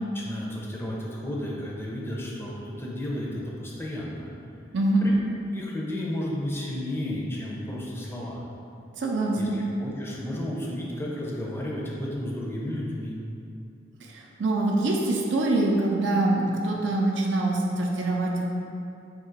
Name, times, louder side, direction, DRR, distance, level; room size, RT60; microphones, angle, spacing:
voice 1, 0.1-4.3 5.0-5.2 5.5-8.4 9.4-13.2, left 1 dB, 15° left, -4 dB, 0.5 m, -33 dB
voice 2, 4.7-5.1 8.9-9.6 14.0-18.5, right 2 dB, 65° right, -1 dB, 0.5 m, -24 dB
3.6 x 2.8 x 4.5 m, 2.7 s
head